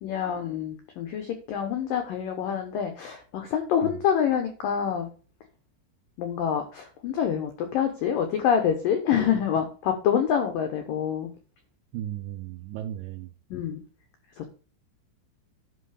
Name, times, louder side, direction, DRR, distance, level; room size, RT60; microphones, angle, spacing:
voice 1, 0.0-5.1 6.2-11.3 13.5-13.8 14.4-14.5, left 8 dB, 80° left, 6 dB, 2.0 m, -26 dB
voice 2, 11.9-13.3, right 12 dB, 75° right, 5 dB, 2.6 m, -35 dB
11.0 x 5.7 x 5.0 m, 0.37 s
omnidirectional pair, 5.5 m